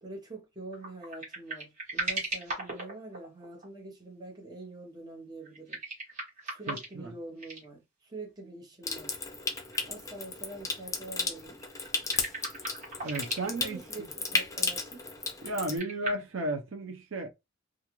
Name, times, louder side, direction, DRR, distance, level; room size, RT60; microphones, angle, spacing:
voice 1, 0.0-5.8 6.4-9.2 9.9-11.6 13.5-15.0, right 2 dB, 20° right, 0.7 m, -45 dB
sound 1, 0.7-3.6 5.4-7.1 7.4-7.6 8.9-9.0 9.5-9.8 10.1-10.2 11.4-13.5 15.4-16.1, right 2 dB, 40° right, 1.3 m, -37 dB
voice 2, 6.7-7.1 13.0-14.1 15.4-17.3, right 2 dB, 75° right, 0.6 m, -34 dB
Water tap faucet / Sink (filling or washing) / Trickle dribble, 8.8-15.8, left 4 dB, 15° left, 0.5 m, -34 dB
2.4 x 2.3 x 2.9 m
head